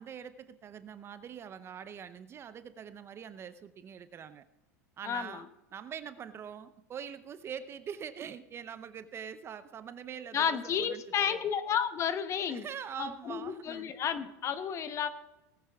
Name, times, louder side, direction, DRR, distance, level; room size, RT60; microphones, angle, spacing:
voice 1, 0.0-4.4 5.0-11.0 11.3-11.4 12.5-13.9, right 8 dB, 30° right, 13 dB, 0.6 m, -44 dB
voice 2, 5.0-5.4 10.3-12.7 13.0-15.1, left 7 dB, 35° left, 11 dB, 1.0 m, -32 dB
18.5 x 9.3 x 3.5 m, 0.95 s
supercardioid pair, 115°, 9 cm